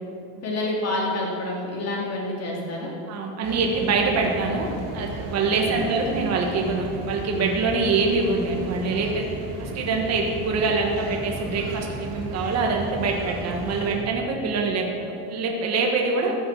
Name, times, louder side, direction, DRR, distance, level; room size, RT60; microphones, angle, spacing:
voice 1, 0.4-2.9 5.6-5.8, left 1 dB, 30° left, -3 dB, 3.3 m, -28 dB
voice 2, 3.1-9.3 9.6-16.4, right 4 dB, 35° right, 1 dB, 1.5 m, -24 dB
sound 1, 3.4-14.0, right 1 dB, 50° right, 3.0 m, -35 dB
14.5 x 7.1 x 7.0 m, 2.6 s
supercardioid pair, 145°, 47 cm